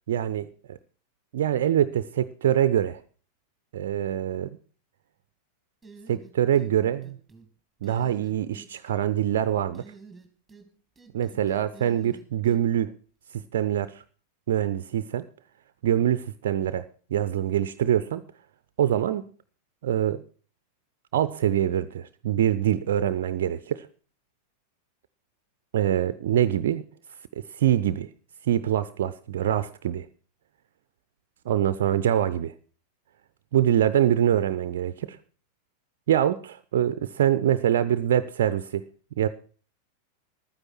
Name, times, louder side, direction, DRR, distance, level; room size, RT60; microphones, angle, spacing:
voice 1, 0.1-0.8 1.3-3.0 3.7-4.6 6.1-7.2 7.8-9.8 11.1-12.9 13.3-14.0 14.5-15.3 15.8-16.8 17.1-18.2 18.8-19.3 19.8-20.2 21.1-23.9 25.7-26.9 27.5-28.1 28.4-30.1 31.5-32.5 33.5-35.2 36.1-38.8 39.2-39.3, right 10 dB, 55° right, 14 dB, 0.5 m, -24 dB
sound 1, 5.8-6.7 7.0-7.5 7.8-8.7 9.7-10.7 10.9-12.6, right 4 dB, 5° right, 2.5 m, -49 dB
12.5 x 9.7 x 6.1 m, 0.41 s
figure-of-eight pair, 90°, 0 cm